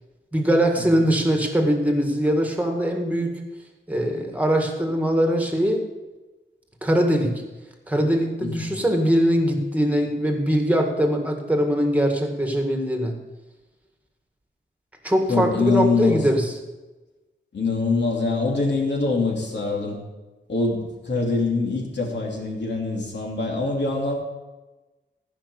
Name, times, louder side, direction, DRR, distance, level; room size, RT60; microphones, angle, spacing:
voice 1, 0.3-3.4 3.9-5.8 6.8-7.4 7.9-13.2 15.0-16.5, equal, 5° right, 3 dB, 1.8 m, -22 dB
voice 2, 15.3-16.2 17.5-20.0 20.5-24.1, left 3 dB, 60° left, -1 dB, 2.9 m, -24 dB
15.0 x 5.9 x 7.0 m, 1.1 s
wide cardioid pair, 140°, 20 cm